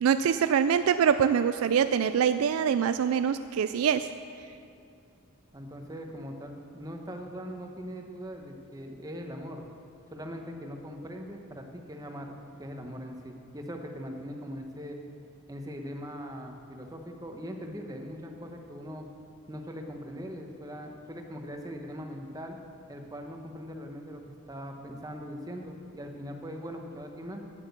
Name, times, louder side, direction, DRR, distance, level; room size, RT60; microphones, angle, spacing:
voice 1, 0.0-4.1, right 7 dB, 80° right, 11 dB, 0.3 m, -24 dB
voice 2, 5.5-9.6 10.1-12.3 12.6-15.0 15.5-19.1 19.5-22.6 22.9-27.4, equal, 15° right, 3 dB, 0.9 m, -41 dB
9.0 x 8.2 x 8.1 m, 2.5 s
head